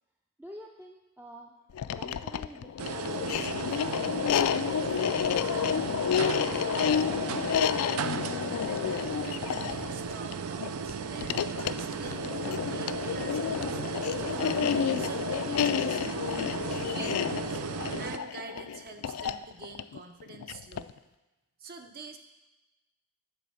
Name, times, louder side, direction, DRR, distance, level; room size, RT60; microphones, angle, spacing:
voice 1, 0.4-1.5 1.8-5.2, right 1 dB, 10° right, 1 dB, 0.4 m, -49 dB
sound 1, 1.7-21.0, left 8 dB, 75° left, 0.3 m, -30 dB
sound 2, 2.8-18.2, right 5 dB, 80° right, 0.4 m, -35 dB
voice 2, 8.6-14.4 15.0-16.6 16.9-17.6 18.0-21.0 21.6-22.2, right 3 dB, 45° right, 6 dB, 0.7 m, -46 dB
9.1 x 4.3 x 7.0 m, 1.1 s
head